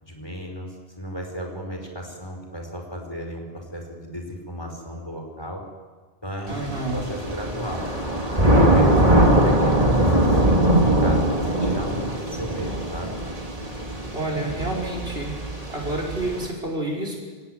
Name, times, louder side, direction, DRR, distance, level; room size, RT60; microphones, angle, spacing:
voice 1, 0.0-5.6 6.2-7.9 8.4-13.1, equal, 25° left, 2 dB, 5.0 m, -35 dB
Thunder / Rain, 6.5-16.4, right 1 dB, 35° right, 2.9 m, -21 dB
voice 2, 6.5-7.0 14.1-15.3 15.7-17.1, right 2 dB, 75° right, 0 dB, 6.1 m, -29 dB
26.0 x 17.5 x 9.7 m, 1.4 s
omnidirectional pair, 1.0 m